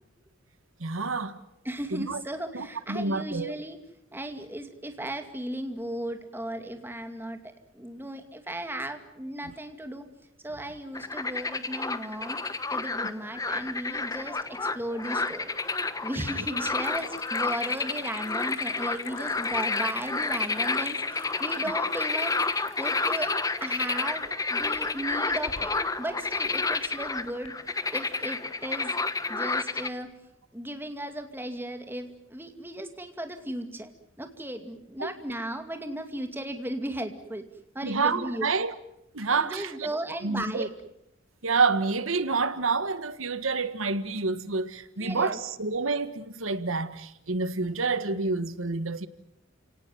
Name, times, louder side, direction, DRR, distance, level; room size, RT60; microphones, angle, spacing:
voice 1, 0.8-1.4 1.9-2.2 2.5-3.5 35.0-35.1 37.8-38.7 39.1-39.7 40.2-40.7 41.4-49.1, right 4 dB, 90° right, 1.6 m, -28 dB
voice 2, 1.6-3.8 4.1-7.4 7.7-10.1 10.4-12.4 12.7-15.5 16.0-23.3 23.6-25.7 26.0-27.5 27.9-29.0 29.3-30.1 30.5-33.9 34.2-37.4 37.7-38.5 39.3-40.7 45.0-45.4, right 1 dB, 10° right, 2.3 m, -36 dB
sound 1, 10.9-29.9, left 3 dB, 15° left, 1.0 m, -30 dB
sound 2, 13.7-14.4 14.7-15.3 16.8-27.5, left 4 dB, 75° left, 3.4 m, -49 dB
30.0 x 18.0 x 9.3 m
head